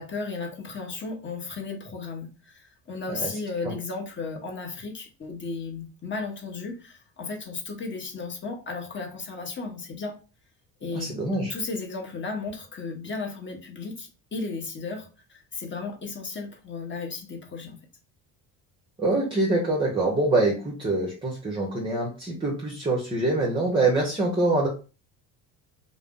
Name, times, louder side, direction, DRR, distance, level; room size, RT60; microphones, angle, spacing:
voice 1, 0.0-10.1 10.8-11.1 11.5-17.8, left 4 dB, 25° left, 0.9 m, -35 dB
voice 2, 10.9-11.5 19.0-24.7, right 2 dB, 10° right, 0.7 m, -25 dB
2.4 x 2.0 x 3.6 m
supercardioid pair, 85°, 42 cm